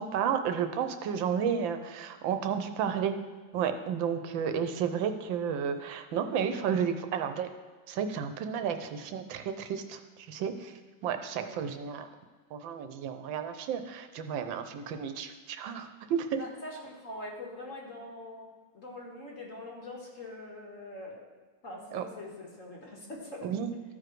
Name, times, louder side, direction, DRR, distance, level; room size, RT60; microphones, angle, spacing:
voice 1, 0.0-3.1 3.5-7.5 7.9-12.1 12.5-16.4 21.9-22.0 23.4-23.7, right 7 dB, 75° right, 8 dB, 1.4 m, -32 dB
voice 2, 16.4-21.2 21.6-23.5, left 2 dB, 40° left, -1 dB, 1.9 m, -43 dB
13.5 x 4.9 x 4.6 m, 1.4 s
omnidirectional pair, 2.2 m